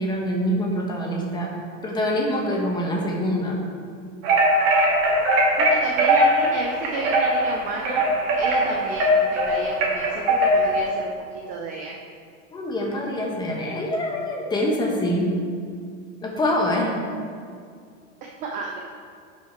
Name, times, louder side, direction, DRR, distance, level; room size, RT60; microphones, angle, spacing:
voice 1, 0.0-1.5 1.8-3.6 12.5-15.4 16.2-17.0, equal, 10° left, -1 dB, 1.0 m, -25 dB
sound 1, 4.2-10.9, right 1 dB, 50° right, 2.0 m, -20 dB
voice 2, 5.6-8.0 8.3-12.0 18.4-18.8, right 4 dB, 20° right, 0 dB, 0.4 m, -32 dB
10.5 x 5.8 x 4.4 m, 2.2 s
supercardioid pair, 165°, 38 cm